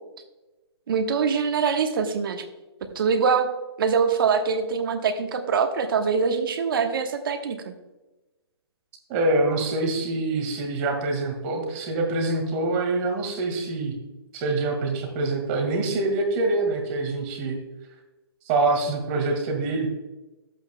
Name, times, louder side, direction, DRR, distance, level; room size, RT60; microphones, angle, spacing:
voice 1, 0.9-2.5 2.9-3.5 3.8-7.7, right 5 dB, 55° right, 7 dB, 1.2 m, -23 dB
voice 2, 9.1-13.9 14.3-17.6 18.5-19.9, right 2 dB, 30° right, 3 dB, 1.8 m, -25 dB
11.5 x 8.1 x 2.2 m, 1.1 s
hypercardioid pair, 145°, 14 cm